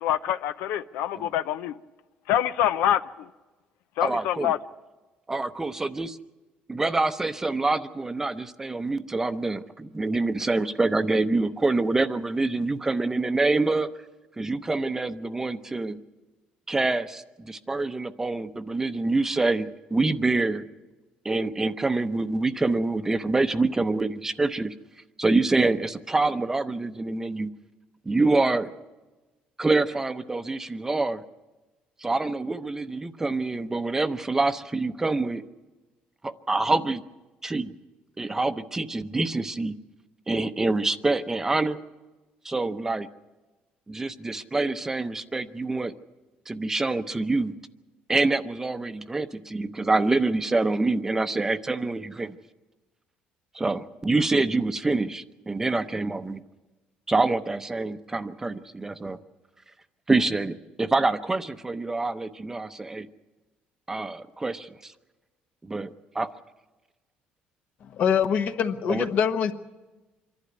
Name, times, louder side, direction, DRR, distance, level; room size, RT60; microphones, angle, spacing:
voice 1, 0.0-1.8 2.3-3.0 4.0-4.6, left 11 dB, 85° left, 12 dB, 0.6 m, -25 dB
voice 2, 4.0-4.5 5.3-6.2 6.7-13.9 14.4-16.0 16.7-20.6 21.2-24.7 25.2-27.5 28.1-28.7 29.6-31.2 32.0-35.4 36.2-37.0 37.4-37.7 38.2-39.7 40.3-41.8 42.4-43.1 43.9-45.9 46.5-47.5 48.1-52.4 53.5-56.4 57.1-59.2 60.1-63.1 63.9-64.9 65.6-66.3 68.9-69.1, right 3 dB, 15° right, 11 dB, 0.7 m, -26 dB
voice 3, 67.8-69.5, left 7 dB, 55° left, 8 dB, 1.2 m, -24 dB
25.5 x 11.5 x 9.5 m, 1.2 s
cardioid pair, 125°, 3 cm